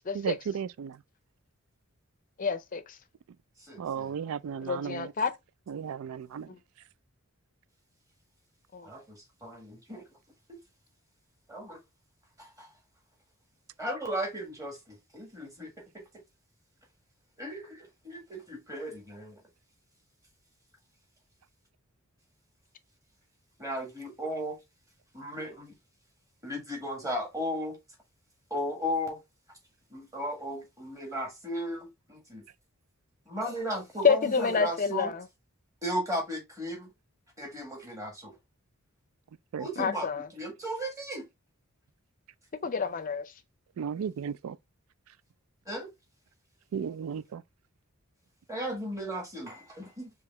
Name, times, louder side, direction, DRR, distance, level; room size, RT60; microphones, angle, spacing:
voice 1, 0.1-1.0 3.8-5.1 5.7-6.6 39.5-39.7 43.8-44.6 45.1-45.2 46.7-47.4, right 7 dB, 70° right, 0.3 m, -35 dB
voice 2, 2.4-3.0 4.7-5.3 8.7-8.9 34.0-35.2 39.8-40.3 42.6-43.2, left 5 dB, 40° left, 0.5 m, -28 dB
voice 3, 3.6-4.1 8.8-10.0 10.5-10.6 11.5-11.8 12.4-12.7 13.8-16.0 17.4-19.4 23.6-24.6 25.1-25.8 26.4-27.8 28.5-29.2 29.9-32.4 33.3-35.1 35.8-36.9 37.4-38.4 39.6-41.3 45.6-45.9 48.5-50.1, equal, 15° right, 1.6 m, -36 dB
4.8 x 3.0 x 3.4 m
head